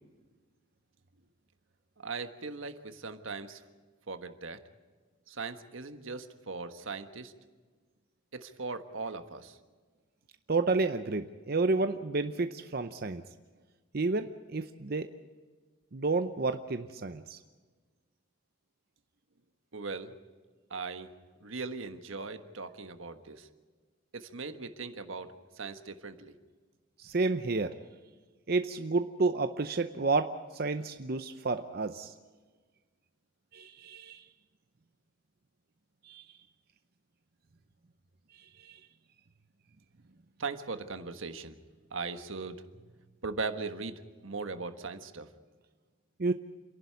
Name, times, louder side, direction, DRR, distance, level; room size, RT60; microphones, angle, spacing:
voice 1, 2.0-3.6 4.1-4.6 5.3-7.3 8.3-9.6 19.7-20.1 20.7-21.1 21.4-23.5 24.1-26.4 40.4-41.6 41.9-42.6 43.2-45.3, right 4 dB, 85° right, 8 dB, 1.4 m, -39 dB
voice 2, 10.5-13.2 13.9-15.1 15.9-17.4 27.0-27.7 28.5-32.1 33.5-34.2 36.0-36.3 38.3-38.8 46.2-46.3, right 3 dB, 50° right, 8 dB, 0.7 m, -30 dB
28.5 x 11.5 x 9.6 m, 1.4 s
head